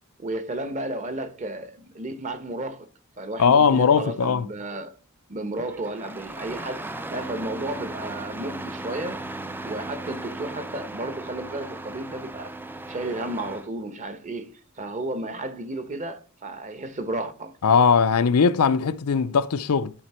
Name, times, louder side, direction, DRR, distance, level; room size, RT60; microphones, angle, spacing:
voice 1, 0.2-2.9 3.2-4.9 5.3-9.2 9.6-12.5 12.9-17.6, right 1 dB, 35° right, 1.0 m, -33 dB
voice 2, 3.4-4.5 17.6-19.9, left 6 dB, 90° left, 0.5 m, -19 dB
Engine starting, 5.5-13.7, right 2 dB, 10° right, 0.4 m, -36 dB
11.5 x 4.2 x 4.3 m
head